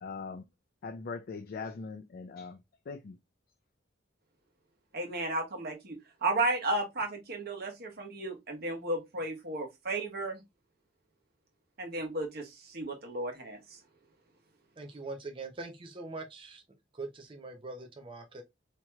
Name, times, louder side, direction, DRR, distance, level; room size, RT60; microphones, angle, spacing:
voice 1, 0.0-0.4 0.8-3.2, left 4 dB, 50° left, 0.4 m, -41 dB
voice 2, 4.9-10.4 11.8-13.8, right 2 dB, 55° right, 1.1 m, -34 dB
voice 3, 14.8-16.6 16.9-18.4, right 3 dB, 25° right, 0.6 m, -42 dB
4.4 x 2.9 x 2.3 m
head